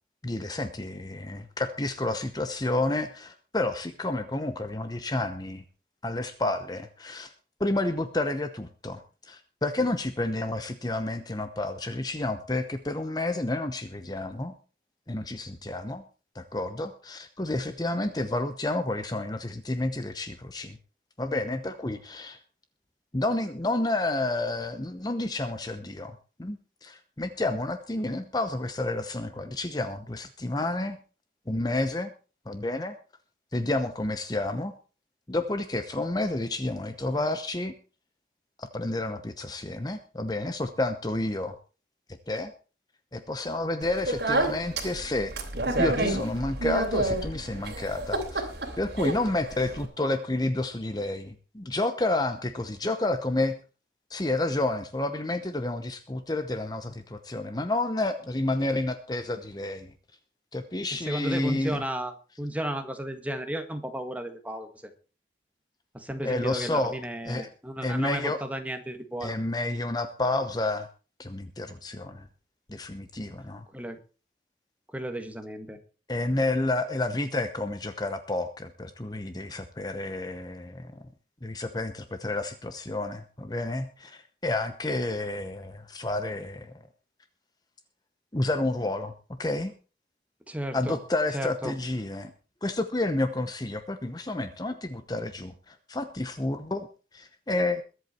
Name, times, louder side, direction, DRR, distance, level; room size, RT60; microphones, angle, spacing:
voice 1, 0.2-5.6 6.0-7.3 7.6-14.5 15.1-16.0 16.3-20.8 21.2-22.4 23.1-31.0 31.5-32.1 32.5-33.0 33.5-34.7 35.3-37.7 38.6-41.6 42.3-42.5 43.1-45.3 45.8-48.5 48.8-53.6 54.1-59.9 60.5-61.8 66.2-67.0 67.2-67.5 67.8-68.4 69.2-70.9 71.2-72.3 72.7-73.6 76.1-81.0 81.4-86.7 88.3-89.1 89.4-89.7 90.7-92.3 92.6-96.9 97.1-97.8, left 2 dB, 25° left, 9 dB, 0.9 m, -30 dB
Speech, 43.8-49.9, right 2 dB, 65° right, 3.1 m, -30 dB
voice 2, 61.1-64.7 65.9-69.3 73.7-74.0 74.9-75.8 90.5-91.0 91.3-91.7, right 1 dB, 10° right, 7 dB, 1.6 m, -33 dB
22.0 x 8.1 x 4.4 m, 0.35 s
head